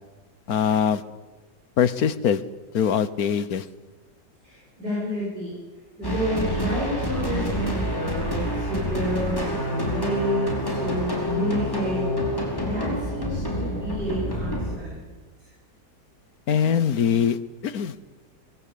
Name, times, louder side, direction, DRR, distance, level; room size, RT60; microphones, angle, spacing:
voice 1, 0.5-1.0 1.8-2.4 2.7-3.7 16.5-17.4 17.6-17.9, left 8 dB, 60° left, 15 dB, 1.5 m, -22 dB
voice 2, 4.4-5.5 6.0-12.0 12.6-15.0 15.4-15.5, equal, 70° right, -7 dB, 8.8 m, -30 dB
sound 1, 6.0-14.8, left 1 dB, 10° left, 5.0 m, -27 dB
26.0 x 21.0 x 8.6 m, 1.3 s
omnidirectional pair, 1.8 m